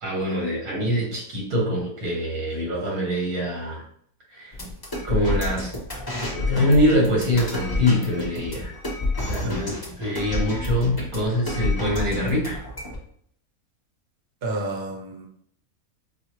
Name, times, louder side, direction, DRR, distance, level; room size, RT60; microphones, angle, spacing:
voice 1, 0.0-3.8 4.3-4.6 5.0-5.7 6.3-8.7 9.3-12.6, left 1 dB, 90° right, -2 dB, 1.7 m, -24 dB
sound 1, 4.5-13.0, left 2 dB, 25° left, 0.5 m, -29 dB
voice 2, 14.4-15.3, right 2 dB, 50° right, 0 dB, 0.8 m, -30 dB
4.2 x 2.1 x 2.9 m, 0.63 s
omnidirectional pair, 1.5 m